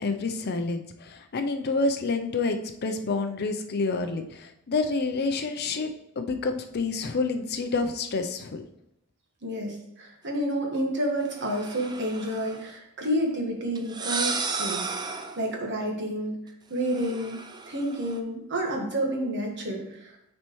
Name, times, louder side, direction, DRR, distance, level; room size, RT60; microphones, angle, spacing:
voice 1, 0.0-8.6, left 3 dB, 50° left, 6 dB, 0.5 m, -28 dB
voice 2, 9.4-16.4 16.7-17.4 17.6-20.3, right 1 dB, 55° right, 1 dB, 1.4 m, -30 dB
sound 1, 11.3-12.6 13.8-15.5 16.8-18.2, right 4 dB, 20° right, 0.4 m, -33 dB
9.3 x 4.3 x 3.1 m, 0.80 s
head